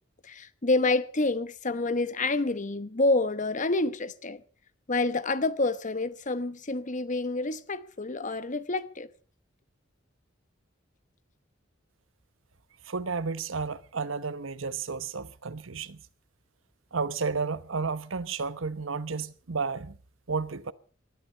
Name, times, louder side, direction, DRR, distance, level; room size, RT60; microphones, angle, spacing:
voice 1, 0.2-4.4 4.9-9.1, left 2 dB, 40° left, 1.0 m, -28 dB
voice 2, 12.8-16.0 16.9-20.0 20.3-20.7, right 4 dB, 85° right, 1.0 m, -32 dB
20.0 x 13.0 x 5.6 m
head